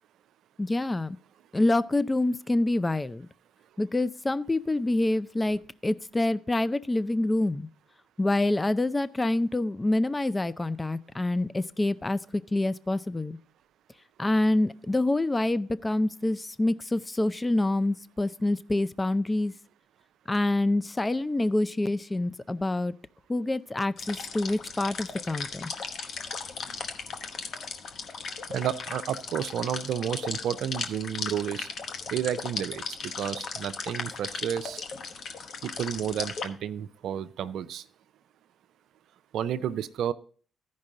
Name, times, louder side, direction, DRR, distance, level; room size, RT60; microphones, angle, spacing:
voice 1, 0.6-1.2 1.5-3.3 3.8-7.7 8.2-13.4 14.2-19.5 20.3-22.9 23.3-25.7, left 2 dB, 20° left, 16 dB, 0.5 m, -26 dB
sound 1, 24.0-36.5, left 5 dB, 60° left, 1.0 m, -37 dB
voice 2, 28.5-31.7 32.1-34.8 35.6-37.8 39.3-40.1, right 9 dB, 70° right, 14 dB, 0.5 m, -31 dB
14.0 x 5.4 x 3.8 m, 0.43 s
supercardioid pair, 55°, 0 cm